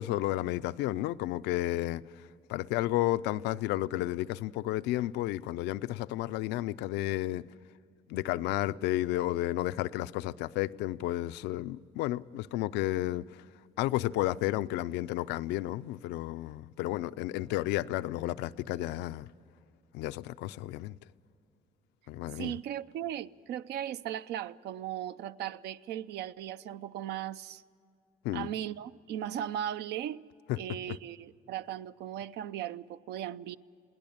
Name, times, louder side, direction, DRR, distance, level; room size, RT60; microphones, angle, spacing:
voice 1, 0.0-2.0 2.5-7.4 8.1-13.4 13.8-19.3 19.9-21.0 22.1-22.5 28.2-28.5 30.5-30.6 30.9-31.0, left 15 dB, 90° left, 0.5 m, -32 dB
voice 2, 22.3-27.6 28.3-30.3 30.6-33.6, right 11 dB, 75° right, 0.6 m, -37 dB
21.5 x 17.5 x 8.7 m
cardioid pair, 110°, 17 cm